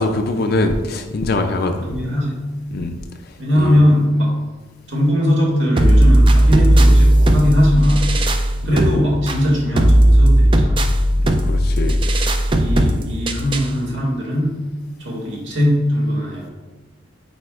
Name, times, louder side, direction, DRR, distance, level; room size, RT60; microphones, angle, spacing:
voice 1, 0.0-2.0 2.7-2.9 3.6-3.8 8.6-8.8 11.2-12.0, left 2 dB, 50° left, 5 dB, 0.4 m, -22 dB
voice 2, 1.8-2.4 3.4-4.3 4.9-8.1 8.6-10.9 12.5-14.6 15.0-16.5, equal, 65° right, -4 dB, 1.8 m, -19 dB
sound 1, 5.8-13.8, right 1 dB, 25° right, 0.4 m, -15 dB
9.0 x 4.3 x 2.4 m, 1.2 s
head